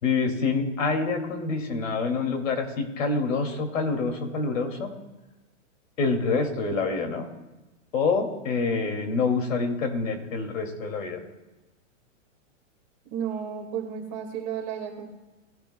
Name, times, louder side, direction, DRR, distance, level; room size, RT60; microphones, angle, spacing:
voice 1, 0.0-4.9 6.0-7.3 7.9-11.2, left 4 dB, 80° left, 4 dB, 2.5 m, -26 dB
voice 2, 13.1-15.1, right 8 dB, 35° right, 1 dB, 1.8 m, -32 dB
19.5 x 11.5 x 2.2 m, 1.1 s
hypercardioid pair, 170°, 38 cm